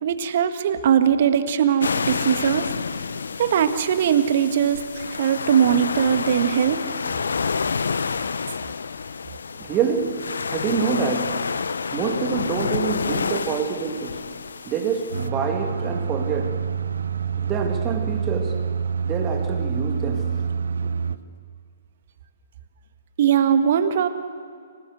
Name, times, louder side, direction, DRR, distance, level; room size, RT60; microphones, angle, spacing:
voice 1, 0.0-2.7 3.4-6.8 23.2-24.1, right 8 dB, 50° right, 1.7 m, -20 dB
sound 1, 1.8-15.3, left 5 dB, 70° left, 0.7 m, -29 dB
voice 2, 9.5-11.7 11.9-14.4 14.6-16.8 17.3-20.5 20.8-21.0, right 6 dB, 25° right, 2.2 m, -27 dB
sound 2, 15.1-21.2, right 6 dB, 70° right, 0.8 m, -26 dB
26.0 x 18.5 x 8.0 m
figure-of-eight pair, 125°, 0 cm